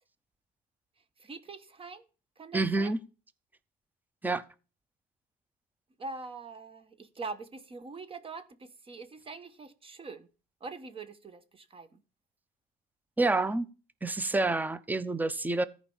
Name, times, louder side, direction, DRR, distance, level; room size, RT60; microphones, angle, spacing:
voice 1, 1.2-2.0 2.4-2.9 6.0-10.3 10.6-12.0, right 4 dB, 35° right, 1.2 m, -43 dB
voice 2, 2.5-3.0 4.2-4.4 13.2-13.7 14.0-15.6, right 2 dB, 10° right, 0.7 m, -28 dB
14.0 x 5.1 x 7.1 m
cardioid pair, 110°, 17 cm